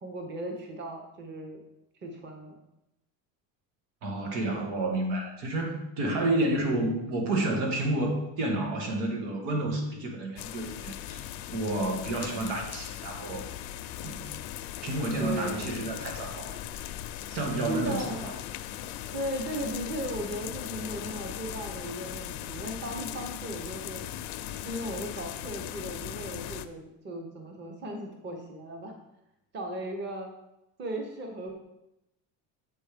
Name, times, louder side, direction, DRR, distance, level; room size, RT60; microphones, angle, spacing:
voice 1, 0.0-1.6 2.0-2.6 15.2-15.6 17.7-18.2 19.1-24.1 24.6-29.0 29.5-30.3 30.8-31.5, right 1 dB, 25° right, 3 dB, 1.0 m, -36 dB
voice 2, 4.0-11.2 11.5-13.5 14.0-14.3 14.8-16.6 17.3-18.3, right 2 dB, 90° right, 1 dB, 2.0 m, -30 dB
sound 1, 10.4-26.7, left 12 dB, 70° left, 0.6 m, -39 dB
7.6 x 4.4 x 5.0 m, 0.87 s
cardioid pair, 165°, 40 cm